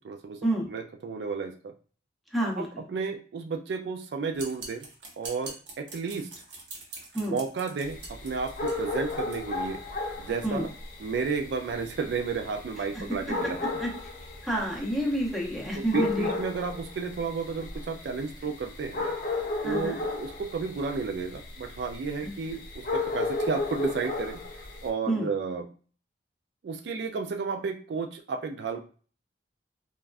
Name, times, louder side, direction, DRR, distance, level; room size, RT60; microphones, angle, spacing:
voice 1, 0.0-0.4 0.7-1.7 2.6-4.9 5.2-6.3 7.3-9.8 10.2-10.7 11.0-13.6 15.7-19.1 19.6-25.7 26.6-28.8, right 5 dB, 65° right, 6 dB, 0.3 m, -32 dB
voice 2, 2.3-2.7 7.1-7.4 10.4-10.7 12.9-13.0 13.8-13.9 14.4-16.3 19.6-20.0 25.1-25.3, right 1 dB, ahead, -3 dB, 0.7 m, -28 dB
sound 1, 4.4-9.4, right 3 dB, 85° right, 0.9 m, -43 dB
sound 2, 7.8-24.9, left 3 dB, 50° left, 0.7 m, -35 dB
3.4 x 2.2 x 2.4 m, 0.40 s
head